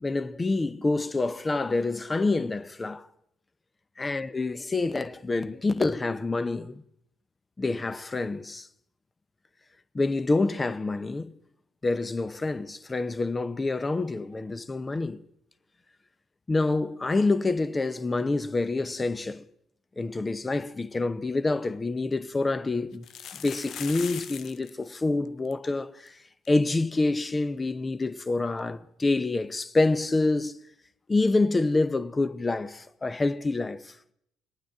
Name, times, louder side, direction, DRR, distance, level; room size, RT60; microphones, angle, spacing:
voice 1, 0.0-3.1 4.0-6.8 7.6-8.7 9.9-11.3 11.8-15.2 16.5-19.4 20.0-23.0 23.4-26.2 26.5-30.6 31.1-33.9, left 3 dB, 25° left, 0.7 m, -27 dB
sound 1, 21.3-21.4 21.7-21.8 22.9-24.7 25.0-25.1 25.3-25.5 26.1-26.2 26.5-26.6 28.6-28.7, left 8 dB, 65° left, 0.5 m, -40 dB
22.0 x 9.1 x 3.6 m
hypercardioid pair, 60°, 0 cm